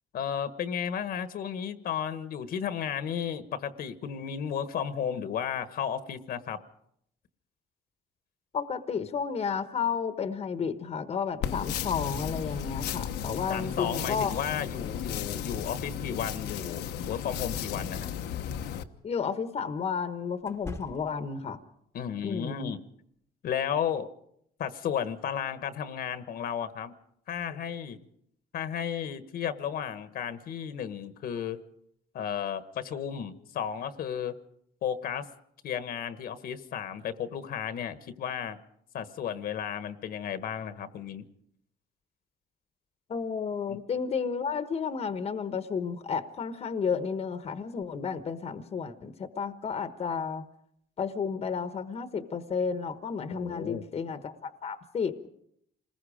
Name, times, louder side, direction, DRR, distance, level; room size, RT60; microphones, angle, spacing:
voice 1, 0.1-6.6 13.5-18.1 21.9-22.8 23.4-24.1 24.6-26.9 27.3-28.0 28.5-31.6 32.1-34.3 34.8-35.3 35.6-38.6 38.9-41.2 43.7-43.8 53.3-53.8, left 8 dB, 60° left, 11 dB, 1.4 m, -33 dB
voice 2, 8.5-14.3 19.0-21.6 22.2-22.7 43.1-50.4 51.0-55.3, left 6 dB, 40° left, 10 dB, 1.2 m, -32 dB
sound 1, 11.4-18.8, left 9 dB, 80° left, 1.1 m, -34 dB
sound 2, 18.2-18.4 20.4-21.4, left 2 dB, 15° left, 1.1 m, -43 dB
27.5 x 20.5 x 5.1 m, 0.73 s
cardioid pair, 110°, 17 cm